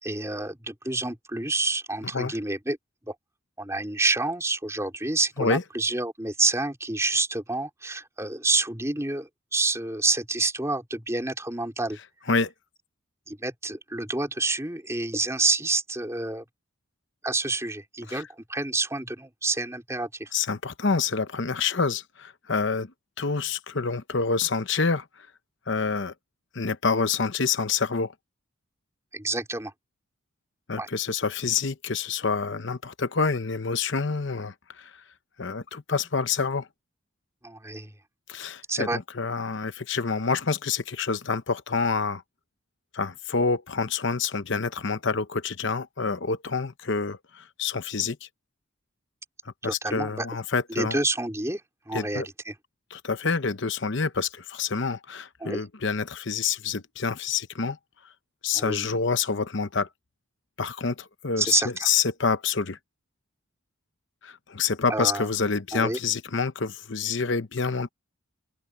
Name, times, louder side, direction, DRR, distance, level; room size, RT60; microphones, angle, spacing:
voice 1, 0.0-2.8 3.1-3.2 3.6-12.0 13.3-16.4 17.2-20.3 29.1-29.7 30.8-30.9 37.4-37.9 38.7-39.0 49.6-50.3 50.7-51.6 51.9-52.5 55.4-55.6 58.5-58.8 61.4-61.9 64.9-65.3 65.7-66.0, right 3 dB, 15° right, 4.3 m, -28 dB
voice 2, 20.3-22.9 23.2-25.0 25.7-26.1 26.5-28.1 30.7-34.9 35.4-36.7 38.3-42.2 42.9-48.2 49.6-51.0 51.9-52.3 52.9-57.8 58.4-59.9 60.6-62.8 64.2-67.9, left 5 dB, 55° left, 0.8 m, -27 dB
open air
head